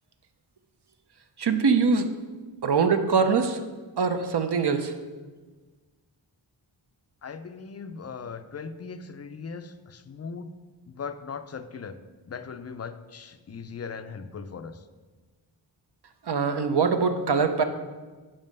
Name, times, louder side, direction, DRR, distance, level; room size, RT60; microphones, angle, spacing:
voice 1, 1.4-2.1 2.6-3.6 4.0-4.9 16.2-17.6, right 5 dB, 55° right, 7 dB, 0.7 m, -23 dB
voice 2, 7.2-10.5 10.9-12.0 12.3-14.8, left 5 dB, 35° left, 11 dB, 0.4 m, -39 dB
5.4 x 5.0 x 5.3 m, 1.3 s
cardioid pair, 45°, 47 cm